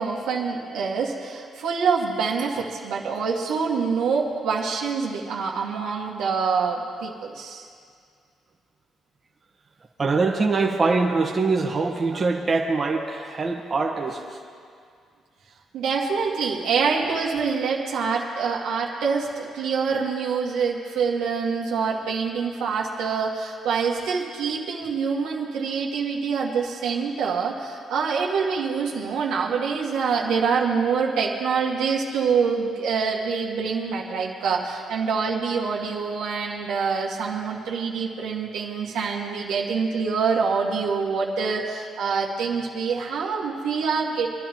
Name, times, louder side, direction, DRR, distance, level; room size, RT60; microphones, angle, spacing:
voice 1, 0.0-7.7 15.7-44.3, right 5 dB, 85° right, -2 dB, 2.0 m, -25 dB
voice 2, 10.0-14.4, right 3 dB, 35° right, 0 dB, 1.4 m, -23 dB
26.0 x 11.0 x 3.1 m, 2.2 s
cardioid pair, 90°, 0 cm